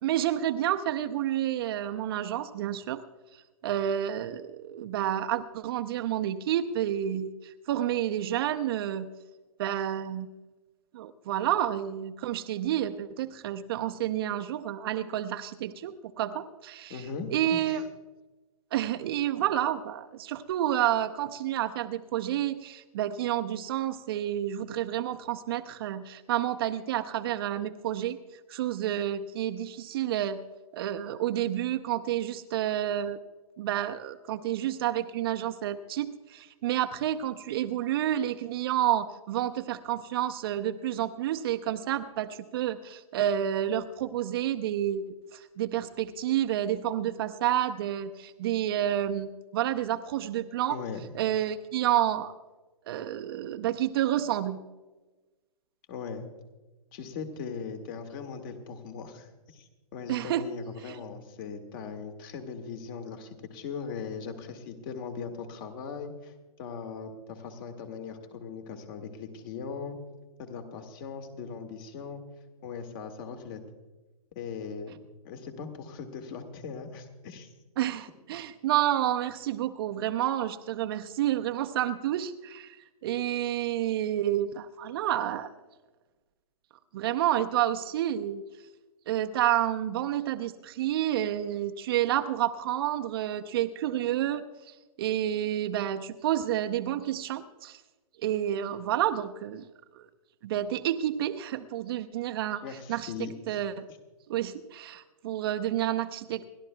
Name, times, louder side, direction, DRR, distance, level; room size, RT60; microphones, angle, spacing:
voice 1, 0.0-3.0 3.6-9.1 9.6-10.3 10.9-17.0 17.3-17.9 18.7-28.2 28.5-30.4 30.7-33.2 33.6-45.0 45.3-50.8 51.1-52.3 52.9-54.6 60.1-60.5 60.9-61.0 77.8-85.5 86.9-88.4 89.1-97.8 98.2-99.7 99.9-100.1 100.4-102.6 102.9-103.1 103.5-103.9 104.3-106.5, right 11 dB, 40° right, 7 dB, 0.7 m, -29 dB
voice 2, 16.9-17.8 50.7-51.0 55.9-56.3 56.9-66.3 66.6-70.0 70.4-72.2 72.6-73.6 74.3-75.0 75.2-77.5 102.6-103.6, left 5 dB, 35° left, 6 dB, 1.8 m, -39 dB
28.5 x 12.0 x 2.3 m, 1.2 s
hypercardioid pair, 140°, 19 cm